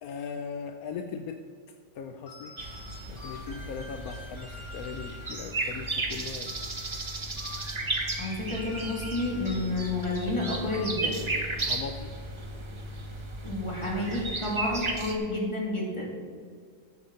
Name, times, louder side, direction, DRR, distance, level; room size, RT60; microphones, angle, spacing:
voice 1, 0.0-1.4 1.9-2.6 3.1-6.6 11.5-12.1, left 6 dB, 75° left, 7 dB, 0.8 m, -39 dB
sound 1, 2.3-11.3, left 3 dB, 40° left, 2.6 m, -47 dB
sound 2, 2.6-15.1, right 2 dB, 45° right, 0.3 m, -34 dB
voice 2, 8.2-11.3 13.4-16.2, left 2 dB, 15° left, -3 dB, 2.1 m, -30 dB
11.5 x 7.3 x 5.2 m, 2.1 s
omnidirectional pair, 2.1 m